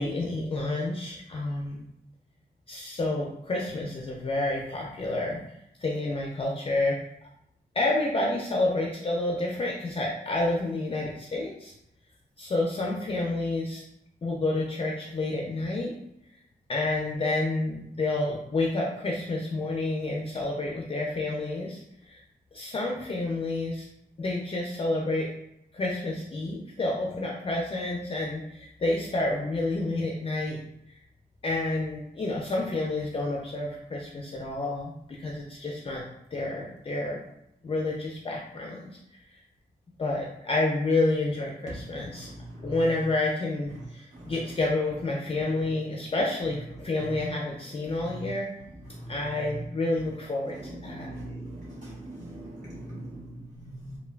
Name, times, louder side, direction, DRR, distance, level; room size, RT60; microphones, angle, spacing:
voice 1, 0.0-1.8 2.7-5.4 5.8-7.0 7.7-11.7 12.4-13.8 14.2-15.9 16.7-22.2 22.5-23.9 24.2-25.3 25.7-30.6 31.4-36.0 36.3-37.2 37.6-38.9 39.3-39.4 40.0-42.3 42.6-48.5 49.1-51.1, left 2 dB, 35° left, -2 dB, 0.3 m, -29 dB
voice 2, 50.6-54.0, right 1 dB, 45° right, -8 dB, 0.9 m, -41 dB
3.1 x 2.1 x 2.2 m, 0.80 s
wide cardioid pair, 140°, 17 cm